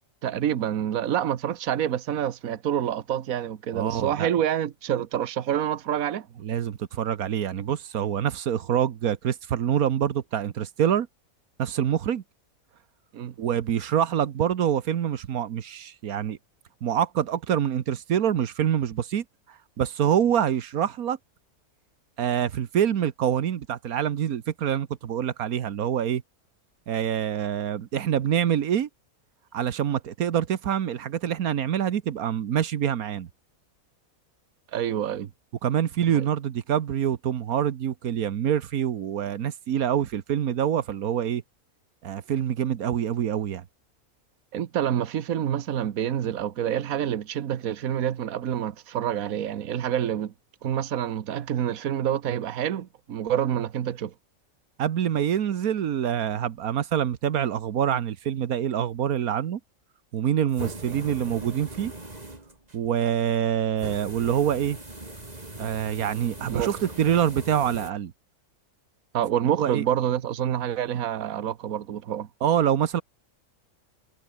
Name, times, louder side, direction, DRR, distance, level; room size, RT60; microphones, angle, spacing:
voice 1, 0.2-6.3 13.1-13.3 34.7-35.3 36.1-36.3 44.5-50.3 50.6-54.1 66.5-66.8 69.1-72.3, right 10 dB, 70° right, 1.4 m, -27 dB
voice 2, 3.7-4.3 6.4-11.1 11.6-12.2 13.4-16.4 16.8-21.2 22.2-26.2 26.9-28.9 29.5-33.3 35.6-41.4 42.0-43.6 54.8-59.6 60.1-61.9 62.7-64.8 65.6-68.1 69.6-69.8 72.4-73.0, right 9 dB, 90° right, 1.5 m, -26 dB
sound 1, 60.5-62.8 63.8-67.9, right 2 dB, 25° right, 3.5 m, -40 dB
omnidirectional pair, 1.5 m